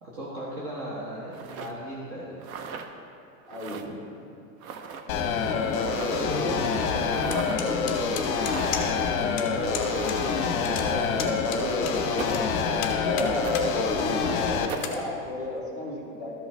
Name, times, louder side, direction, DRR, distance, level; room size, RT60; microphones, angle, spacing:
voice 1, 0.0-2.4 5.1-5.3 6.1-8.4, equal, 45° right, -5 dB, 1.3 m, -36 dB
sound 1, 1.3-1.7 2.4-2.9 3.5-3.8 4.6-5.0 5.8-6.4 7.1-7.6 8.3-8.9 9.7-10.5 12.2-12.5 13.4-13.6 14.7-14.9, right 6 dB, 80° right, 0.8 m, -38 dB
voice 2, 3.5-4.0 10.5-16.3, left 1 dB, 10° right, -3 dB, 1.4 m, -34 dB
sound 2, 5.1-14.7, left 5 dB, 40° left, 0.9 m, -26 dB
sound 3, 7.3-9.1 9.4-9.5 9.7-10.2 10.4-12.4 12.8-13.7 14.1-14.2 14.7-15.0, left 8 dB, 20° left, 0.5 m, -35 dB
13.0 x 5.5 x 3.4 m, 2.6 s
supercardioid pair, 175°, 42 cm